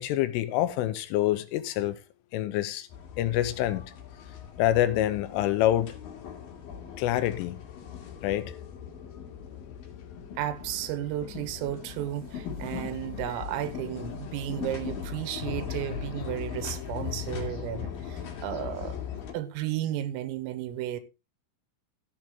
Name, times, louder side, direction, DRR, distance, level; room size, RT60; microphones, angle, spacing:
voice 1, 0.0-2.0 2.3-2.9 3.2-3.9 4.6-6.0 7.0-7.6 8.2-8.5, left 13 dB, 80° left, 3.3 m, -26 dB
sound 1, 2.9-19.3, left 8 dB, 55° left, 3.1 m, -39 dB
voice 2, 10.4-21.0, right 12 dB, 90° right, 3.8 m, -33 dB
14.5 x 7.6 x 3.7 m
omnidirectional pair, 5.8 m